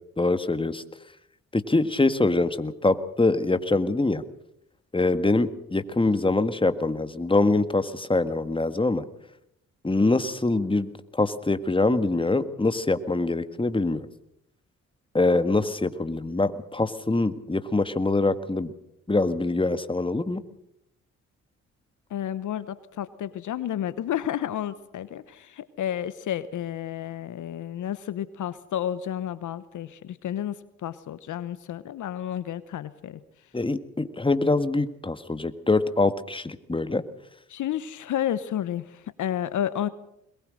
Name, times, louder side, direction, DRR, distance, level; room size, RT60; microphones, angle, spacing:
voice 1, 0.2-0.8 1.5-4.2 4.9-9.0 9.8-14.1 15.1-18.7 19.1-20.4 33.5-37.0, left 2 dB, 15° left, 11 dB, 1.7 m, -24 dB
voice 2, 22.1-33.2 37.5-39.9, left 10 dB, 65° left, 15 dB, 1.0 m, -31 dB
21.5 x 20.0 x 6.4 m, 0.77 s
supercardioid pair, 50°, 32 cm